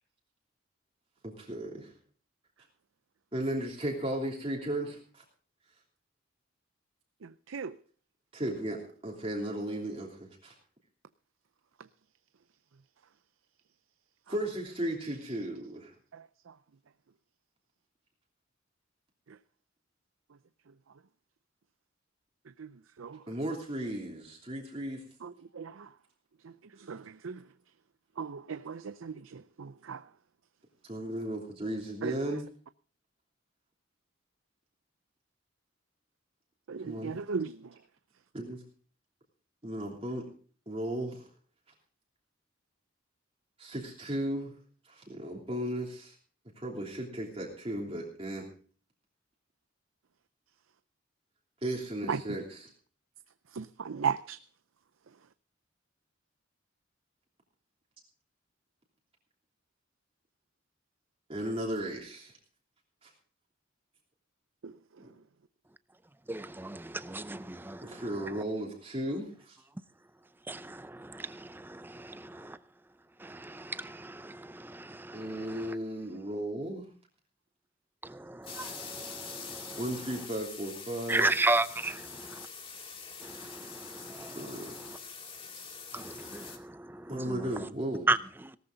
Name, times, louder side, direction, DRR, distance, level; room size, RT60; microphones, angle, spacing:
voice 1, 1.2-1.9 3.3-5.2 8.3-10.5 14.3-15.9 23.3-25.0 30.8-32.4 36.8-37.1 38.3-38.6 39.6-40.2 40.7-41.3 43.6-44.5 44.8-46.1 46.6-48.5 51.6-52.7 61.3-62.3 63.0-63.1 65.0-65.1 67.8-69.6 75.1-76.9 79.8-81.3 84.3-84.7 87.1-88.1, right 1 dB, 30° right, 3.1 m, -35 dB
voice 2, 7.2-7.7 16.1-16.2 22.6-22.7 23.0-23.2 25.2-25.9 26.9-27.4 28.2-30.0 32.0-32.1 36.7-37.6 52.1-52.2 53.5-54.4 64.6-64.7, right 6 dB, 90° right, 0.6 m, -36 dB
voice 3, 66.3-68.0 70.5-72.6 73.2-75.8 78.0-79.8 81.1-82.5 83.2-85.0 85.9-87.4 88.1-88.5, right 2 dB, 10° right, 0.6 m, -35 dB
sound 1, 78.4-86.6, left 5 dB, 25° left, 2.2 m, -45 dB
18.0 x 13.5 x 3.9 m
head